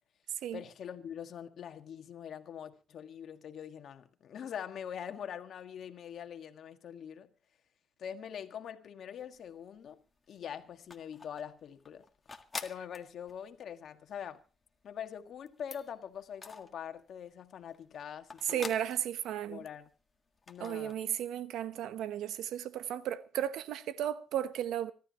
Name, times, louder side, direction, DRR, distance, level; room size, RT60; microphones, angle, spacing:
voice 1, 0.5-7.3 8.0-10.0 10.3-12.0 12.6-14.4 14.8-18.7 19.5-19.9 20.5-21.0, left 8 dB, 65° left, 1.7 m, -43 dB
sound 1, 9.2-9.9 10.2-17.2 17.6-19.9 20.3-20.9, left 4 dB, 30° left, 1.8 m, -47 dB
voice 2, 18.4-19.6 20.6-24.9, right 10 dB, 80° right, 0.9 m, -34 dB
26.0 x 12.5 x 3.0 m
cardioid pair, 90°, 0 cm